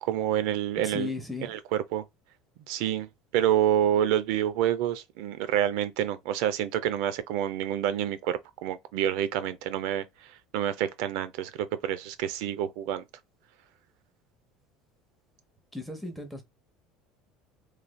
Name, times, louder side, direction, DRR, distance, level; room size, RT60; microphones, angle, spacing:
voice 1, 0.0-1.1 1.5-1.6 1.9-2.0 2.7-10.1 10.5-13.0, right 11 dB, 75° right, 0.5 m, -28 dB
voice 2, 0.8-1.5 15.7-16.4, left 3 dB, ahead, 0.9 m, -35 dB
3.2 x 2.5 x 2.2 m
supercardioid pair, 125°, 0 cm